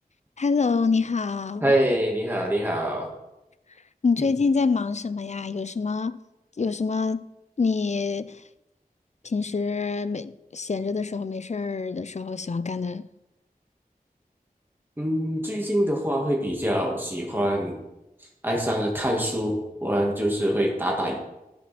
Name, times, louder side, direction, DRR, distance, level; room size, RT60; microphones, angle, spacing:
voice 1, 0.4-1.7 4.0-6.2 6.6-7.3 7.6-8.4 9.2-13.1, left 4 dB, 50° left, 0.4 m, -26 dB
voice 2, 1.6-3.1 15.0-17.8 18.4-21.2, equal, 15° right, 1.9 m, -25 dB
12.0 x 5.4 x 4.2 m
wide cardioid pair, 55°, 16 cm